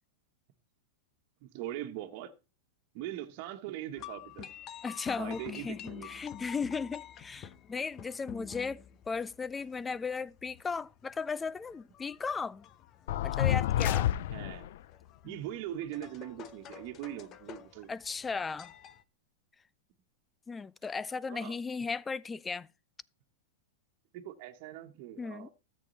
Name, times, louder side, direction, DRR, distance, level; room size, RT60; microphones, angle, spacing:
voice 1, 1.4-2.3 2.9-4.5 5.2-6.1 14.3-14.7 15.2-17.9 21.3-21.6 24.1-25.5, right 12 dB, 50° right, 1.4 m, -41 dB
sound 1, 4.0-19.0, left 10 dB, 35° left, 0.9 m, -49 dB
voice 2, 4.8-12.7 13.2-14.1 15.2-15.4 17.9-18.7 20.5-22.7 25.2-25.5, left 5 dB, 15° left, 0.5 m, -36 dB
sound 2, 13.1-14.8, left 12 dB, 65° left, 0.5 m, -29 dB
13.5 x 8.4 x 4.1 m
hypercardioid pair, 125°, 0 cm